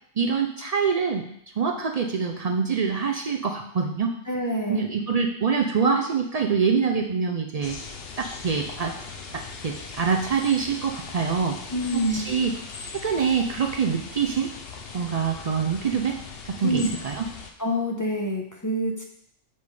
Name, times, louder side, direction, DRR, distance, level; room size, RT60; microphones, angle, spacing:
voice 1, 0.2-1.3 1.6-4.2 4.7-7.8 8.2-8.9 9.3-11.6 12.1-12.5 13.0-14.5 14.9-16.2 16.5-17.2, right 6 dB, 70° right, 2 dB, 0.3 m, -25 dB
voice 2, 4.3-4.9 11.7-12.3 16.6-16.9 17.6-19.0, equal, 20° left, -1 dB, 0.6 m, -26 dB
sound 1, 7.6-17.5, left 4 dB, 55° left, 0.8 m, -39 dB
6.9 x 5.3 x 3.3 m, 0.71 s
omnidirectional pair, 1.3 m